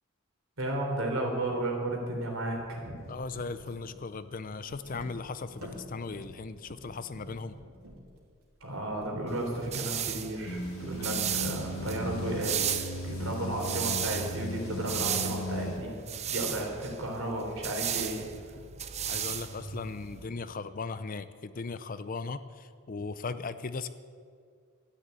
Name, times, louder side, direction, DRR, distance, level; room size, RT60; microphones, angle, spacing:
voice 1, 0.6-2.9 8.6-15.9 16.3-18.2, right 1 dB, 65° right, 0 dB, 3.6 m, -33 dB
sound 1, 2.0-2.2 2.5-2.6 2.9-9.7, equal, 90° right, 3.1 m, -49 dB
voice 2, 3.1-7.6 11.0-11.1 19.1-23.9, left 4 dB, 40° left, 13 dB, 0.5 m, -38 dB
sound 2, 9.3-20.3, right 9 dB, 30° right, 0.6 m, -35 dB
sound 3, 10.5-15.8, equal, 75° left, 1.5 m, -36 dB
13.0 x 10.5 x 8.3 m, 2.2 s
head